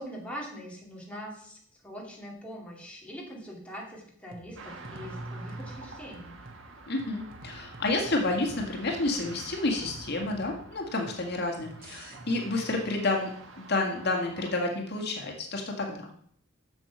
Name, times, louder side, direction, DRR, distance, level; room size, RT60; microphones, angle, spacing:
voice 1, 0.0-6.4, equal, 5° left, -2 dB, 2.4 m, -42 dB
sound 1, 4.3-12.2, right 2 dB, 50° right, 1.5 m, -49 dB
sound 2, 4.6-14.5, right 2 dB, 85° right, 1.5 m, -46 dB
voice 2, 6.9-13.3 13.6-16.1, left 2 dB, 55° left, 2 dB, 1.9 m, -30 dB
7.7 x 7.2 x 6.1 m, 0.63 s
head